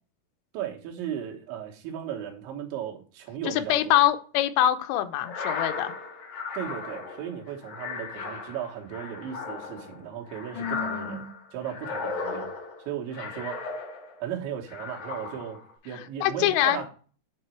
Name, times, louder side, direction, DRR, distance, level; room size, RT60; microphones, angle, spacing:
voice 1, 0.5-4.0 6.5-11.2 11.5-12.5 12.8-13.8 14.2-15.6 15.9-16.9, right 9 dB, 85° right, 1 dB, 3.6 m, -36 dB
voice 2, 3.5-5.9 10.6-11.3 16.2-16.8, left 12 dB, 90° left, 10 dB, 2.8 m, -24 dB
sound 1, 5.2-14.3 14.7-15.7, left 4 dB, 50° left, 4.9 m, -36 dB
9.9 x 4.0 x 4.5 m, 0.40 s
omnidirectional pair, 5.0 m